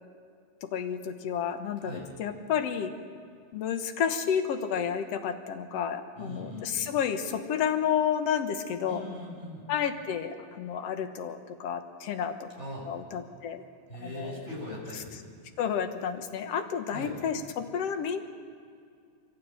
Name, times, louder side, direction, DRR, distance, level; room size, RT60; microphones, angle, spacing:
voice 1, 0.6-2.9 3.5-9.0 9.7-12.5 12.9-13.6 14.0-14.5 14.9-15.0 15.6-18.2, left 8 dB, 60° left, 7 dB, 1.9 m, -31 dB
voice 2, 6.2-6.7 8.8-9.6 12.6-12.9 13.9-15.1 16.9-17.2, left 1 dB, 20° left, -3 dB, 5.9 m, -40 dB
23.5 x 17.0 x 9.0 m, 2.3 s
omnidirectional pair, 3.9 m